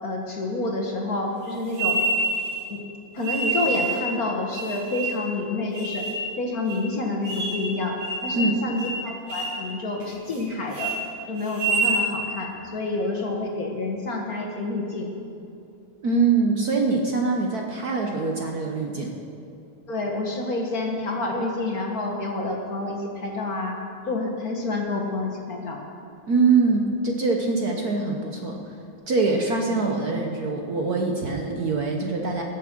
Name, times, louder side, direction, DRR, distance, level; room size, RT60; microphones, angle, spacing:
voice 1, 0.0-2.0 2.7-2.8 3.1-6.1 6.4-10.9 11.3-15.1 19.9-23.8 24.1-25.8, left 2 dB, 45° left, 1 dB, 1.7 m, -28 dB
sound 1, 1.7-2.6 3.2-4.1 4.5-5.3 5.8-6.2 6.7-6.8 7.2-7.7 8.0-8.5 8.8-9.0 9.3-9.6 10.0-10.4 10.7-11.0 11.5-12.0, right 3 dB, 75° right, 3.4 m, -26 dB
voice 2, 16.0-19.1 26.3-28.6 29.1-32.4, right 4 dB, 55° right, 1 dB, 1.3 m, -23 dB
20.0 x 7.4 x 6.1 m, 2.6 s
omnidirectional pair, 2.4 m